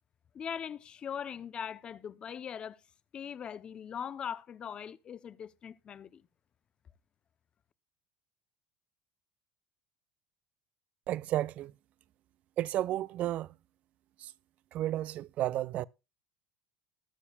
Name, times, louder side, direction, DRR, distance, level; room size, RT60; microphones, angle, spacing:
voice 1, 0.3-2.8 3.1-6.2, left 8 dB, 25° left, 0.7 m, -40 dB
voice 2, 11.1-11.7 12.6-13.5 14.2-14.3 14.7-15.8, right 13 dB, 40° right, 0.4 m, -32 dB
20.0 x 7.0 x 2.3 m
cardioid pair, 155°, 4 cm